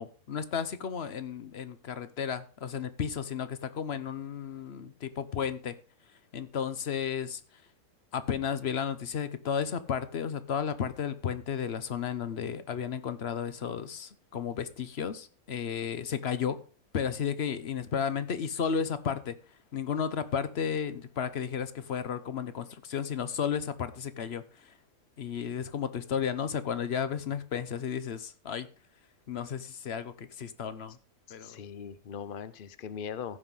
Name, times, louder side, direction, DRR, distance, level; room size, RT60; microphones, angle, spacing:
voice 1, 0.0-5.8 6.3-7.4 8.1-16.6 16.9-19.3 19.7-24.7 25.2-28.7 29.3-31.0 31.3-31.6, left 7 dB, 50° left, 13 dB, 0.9 m, -33 dB
voice 2, 31.4-33.4, left 7 dB, 70° left, 14 dB, 0.5 m, -40 dB
15.0 x 5.8 x 5.4 m, 0.38 s
omnidirectional pair, 1.8 m